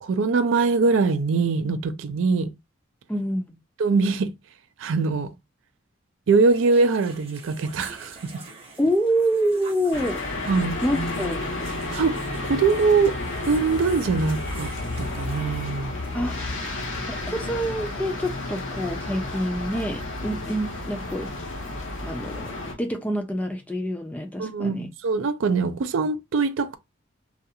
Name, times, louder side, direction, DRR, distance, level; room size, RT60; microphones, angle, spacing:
voice 1, 0.0-2.5 3.8-4.3 4.8-5.3 6.3-8.2 10.5-10.8 11.9-12.2 12.4-13.2 13.5-14.7 15.0-16.0 24.4-26.8, right 4 dB, 75° right, 0.4 m, -22 dB
voice 2, 3.1-3.5 8.8-10.2 10.8-11.4 16.1-16.4 17.1-21.3 22.0-24.9, equal, 5° left, 0.3 m, -27 dB
sound 1, 6.5-15.6, right 4 dB, 30° right, 0.8 m, -46 dB
sound 2, 9.9-22.7, left 2 dB, 80° left, 0.9 m, -31 dB
2.4 x 2.4 x 2.7 m
head